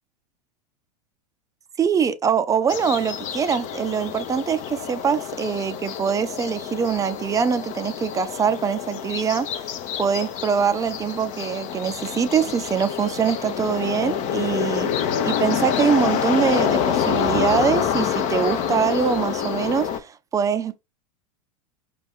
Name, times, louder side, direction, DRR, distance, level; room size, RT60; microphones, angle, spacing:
voice 1, 1.8-9.5 10.0-20.8, right 7 dB, 15° right, 0.5 m, -23 dB
sound 1, 2.7-20.0, left 8 dB, 40° left, 0.7 m, -27 dB
5.0 x 2.5 x 3.5 m
figure-of-eight pair, 90°, 19 cm